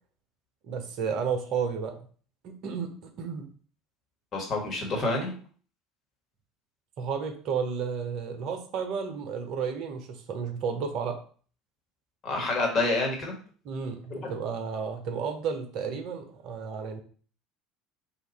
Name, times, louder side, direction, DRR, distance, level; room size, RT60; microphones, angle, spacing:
voice 1, 0.6-2.0 2.4-2.9 3.2-3.5 7.0-11.2 13.6-17.0, right 6 dB, 55° right, 5 dB, 0.7 m, -32 dB
voice 2, 4.3-5.3 12.2-13.4 14.1-14.3, left 2 dB, 35° left, 0 dB, 1.4 m, -28 dB
2.9 x 2.4 x 4.1 m, 0.42 s
figure-of-eight pair, 65°, 0 cm